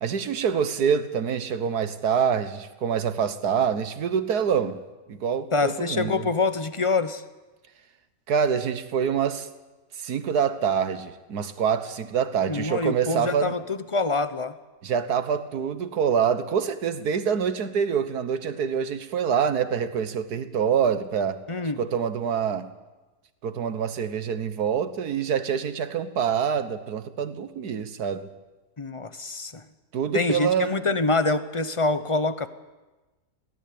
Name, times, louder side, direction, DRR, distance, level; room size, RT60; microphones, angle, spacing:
voice 1, 0.0-4.8 5.1-6.3 8.3-9.5 10.0-13.6 14.8-21.4 21.8-22.7 23.4-28.3 29.9-30.8, right 7 dB, 85° right, 11 dB, 1.7 m, -26 dB
voice 2, 5.5-7.2 12.5-14.5 21.5-21.8 28.8-29.6 30.1-32.5, left 3 dB, 25° left, 12 dB, 0.8 m, -25 dB
22.0 x 17.0 x 8.7 m, 1.1 s
omnidirectional pair, 1.6 m